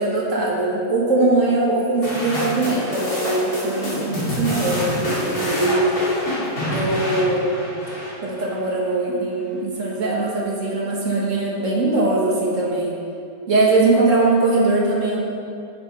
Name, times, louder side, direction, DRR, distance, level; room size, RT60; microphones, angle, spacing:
voice 1, 0.0-6.0 6.7-7.7 8.2-12.9 13.5-15.2, right 2 dB, 45° right, -4 dB, 2.0 m, -21 dB
sound 1, 2.0-8.6, left 1 dB, 55° left, 3.3 m, -27 dB
8.9 x 6.3 x 5.8 m, 2.6 s
omnidirectional pair, 1.8 m